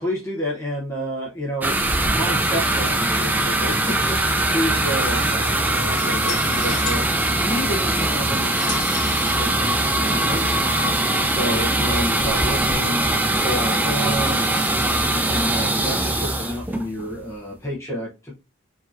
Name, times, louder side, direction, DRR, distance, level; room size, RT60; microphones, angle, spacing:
voice 1, 0.0-11.0 11.3-18.3, equal, 15° left, -4 dB, 0.9 m, -30 dB
sound 1, 1.6-17.3, right 1 dB, 10° right, 0.4 m, -21 dB
sound 2, 1.8-12.7, left 2 dB, 50° left, 1.7 m, -36 dB
4.8 x 2.9 x 2.6 m, 0.28 s
head